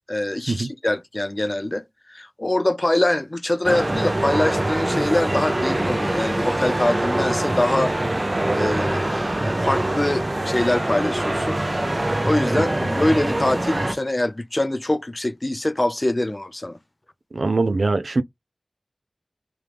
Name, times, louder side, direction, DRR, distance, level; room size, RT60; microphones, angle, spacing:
voice 1, 0.1-7.9 8.5-11.6 12.2-16.8, left 1 dB, 30° left, 0.5 m, -24 dB
sound 1, 3.6-13.9, right 1 dB, 30° right, 0.6 m, -24 dB
sound 2, 3.7-12.2, right 2 dB, 65° right, 0.9 m, -42 dB
voice 2, 17.3-18.2, right 3 dB, 80° right, 0.4 m, -22 dB
3.6 x 3.1 x 3.3 m
wide cardioid pair, 70°, 0 cm